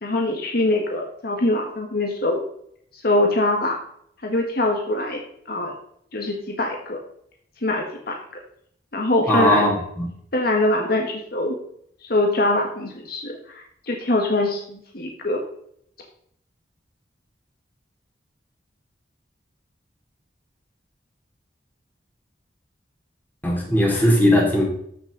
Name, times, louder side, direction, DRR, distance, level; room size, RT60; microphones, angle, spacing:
voice 1, 0.0-2.4 3.0-3.8 4.2-5.2 5.5-5.7 6.1-7.0 7.6-8.2 8.9-9.7 10.3-11.5 12.1-15.4, left 2 dB, 55° left, 1 dB, 1.5 m, -23 dB
voice 2, 9.3-10.0 23.4-24.6, left 1 dB, 10° left, -2 dB, 3.3 m, -18 dB
14.0 x 6.2 x 3.9 m, 0.68 s
head